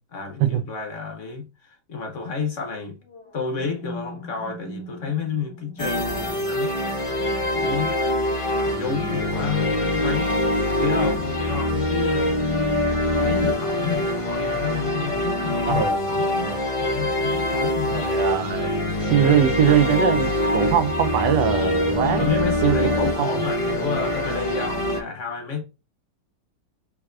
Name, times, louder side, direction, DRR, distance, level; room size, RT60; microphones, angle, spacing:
voice 1, 0.1-3.0 3.3-6.7 7.4-8.0 8.6-10.5 10.8-12.5 13.2-16.5 16.8-18.1 22.2-25.6, left 5 dB, 55° left, 1.0 m, -30 dB
sound 1, 3.0-11.0, left 1 dB, 5° left, 1.4 m, -44 dB
sound 2, 5.8-25.0, left 1 dB, 35° left, 0.5 m, -24 dB
voice 2, 15.7-16.0 16.4-16.6 17.9-18.7 19.1-22.3 22.6-23.4, right 9 dB, 90° right, 1.2 m, -22 dB
4.7 x 3.0 x 2.4 m
omnidirectional pair, 1.8 m